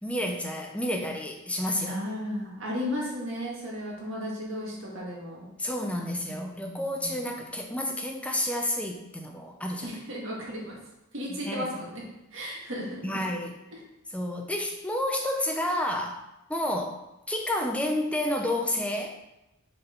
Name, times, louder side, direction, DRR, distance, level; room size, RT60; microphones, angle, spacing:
voice 1, 0.0-2.0 5.6-10.0 11.3-11.7 13.0-13.6 14.1-16.2 16.5-17.0 17.3-19.2, left 1 dB, 5° left, 2 dB, 0.7 m, -30 dB
voice 2, 1.8-5.5 6.3-7.2 9.8-10.7 11.1-12.0 12.3-13.0, equal, 60° right, -4 dB, 2.1 m, -35 dB
6.6 x 4.2 x 4.5 m, 0.91 s
head